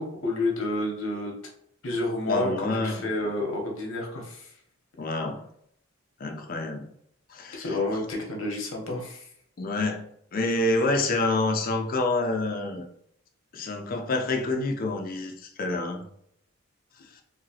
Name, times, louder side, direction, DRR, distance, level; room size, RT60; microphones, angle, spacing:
voice 1, 0.0-1.3 1.8-4.5 7.5-9.3, left 2 dB, 70° left, 0 dB, 0.8 m, -30 dB
voice 2, 2.3-3.3 5.0-5.4 6.2-6.9 7.3-7.8 9.6-12.9 13.5-16.1, left 2 dB, 40° left, 3 dB, 0.4 m, -28 dB
2.8 x 2.4 x 2.8 m, 0.70 s
head